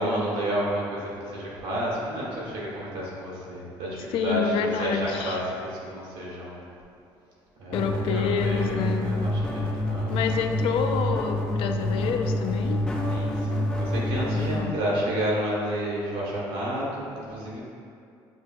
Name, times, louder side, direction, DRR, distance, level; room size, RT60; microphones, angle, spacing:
voice 1, 0.0-6.6 7.6-10.2 13.1-17.6, right 1 dB, 80° right, -6 dB, 1.4 m, -30 dB
voice 2, 4.1-5.4 7.7-9.1 10.1-12.8 14.4-14.7, left 6 dB, 70° left, 5 dB, 0.4 m, -28 dB
sound 1, 7.7-14.6, left 1 dB, 10° left, 0.4 m, -27 dB
8.0 x 2.9 x 2.2 m, 2.5 s
cardioid pair, 160°, 9 cm